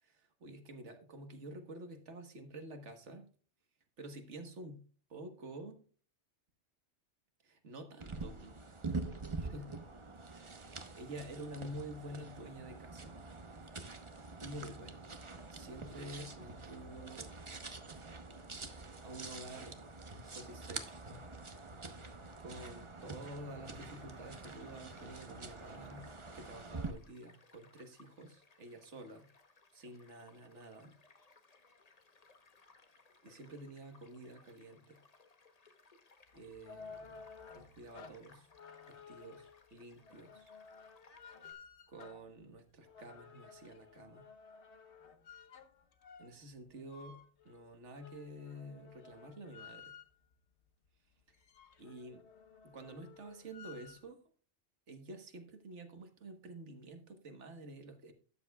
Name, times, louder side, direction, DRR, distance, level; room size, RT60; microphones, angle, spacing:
voice 1, 0.0-3.3 4.0-4.8 5.1-5.8 7.4-8.6 9.4-9.8 10.3-13.2 14.4-17.3 19.0-19.8 20.2-21.0 22.4-29.3 29.7-31.0 33.2-35.0 36.3-37.2 37.5-38.5 38.9-40.5 41.9-44.3 46.2-49.9 51.8-52.2 52.6-54.2 54.9-58.1, right 1 dB, 85° right, 6 dB, 1.7 m, -49 dB
sound 1, 8.0-26.9, right 3 dB, 30° right, 0.9 m, -46 dB
Child speech kid speaking / Stream / Car passing by, 23.9-41.5, left 3 dB, 35° left, 1.1 m, -65 dB
sound 2, 36.3-50.4 50.9-51.0 51.2-54.1, left 5 dB, 75° left, 1.2 m, -55 dB
12.5 x 9.4 x 2.3 m, 0.40 s
omnidirectional pair, 1.2 m